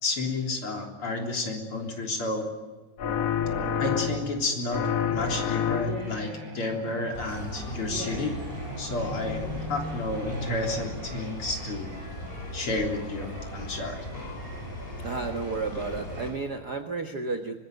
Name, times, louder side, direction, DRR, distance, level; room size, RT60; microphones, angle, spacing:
voice 1, 0.0-2.5 3.8-4.8 5.1-8.3 8.8-11.9 12.5-14.1, left 2 dB, 40° left, 2 dB, 4.2 m, -31 dB
sound 1, 3.0-4.4 4.7-6.2, left 7 dB, 60° left, 2.2 m, -28 dB
sound 2, 4.3-12.6, equal, 30° right, 4.1 m, -40 dB
sound 3, 7.1-16.3, equal, 15° left, 6.6 m, -38 dB
voice 2, 15.0-17.6, right 4 dB, 60° right, 6 dB, 1.0 m, -32 dB
24.5 x 22.0 x 8.0 m, 1.3 s
omnidirectional pair, 3.8 m